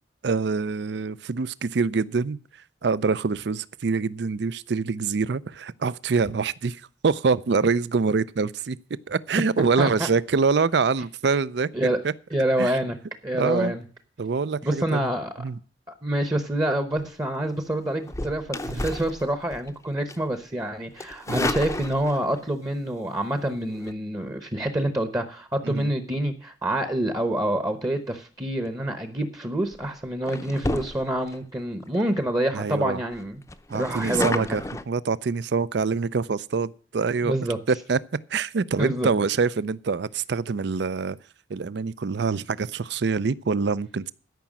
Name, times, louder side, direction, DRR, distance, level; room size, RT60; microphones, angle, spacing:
voice 1, 0.2-2.4 2.8-8.8 9.1-11.7 12.0-12.1 12.6-12.7 13.3-13.7 14.2-15.1 15.4-15.6 18.6-18.8 21.3-21.5 25.6-25.9 32.5-33.0 33.7-34.6 34.9-37.3 37.7-38.0 38.3-41.2 41.5-44.1, right 4 dB, 60° right, 0.5 m, -25 dB
voice 2, 9.8-10.1 11.7-12.0 12.3-13.0 13.2-13.8 14.6-15.4 15.9-33.4 33.7-34.6 37.2-37.6 38.8-39.1, right 1 dB, 20° right, 0.9 m, -27 dB
sound 1, 18.0-19.7 20.1-20.4 21.0-22.4 23.7-23.9 29.0-29.2 29.7-29.9 30.2-31.4 31.9-32.0 32.2-32.3 32.6-32.7 33.1-34.8, left 2 dB, 15° left, 0.6 m, -32 dB
13.0 x 5.9 x 7.3 m
head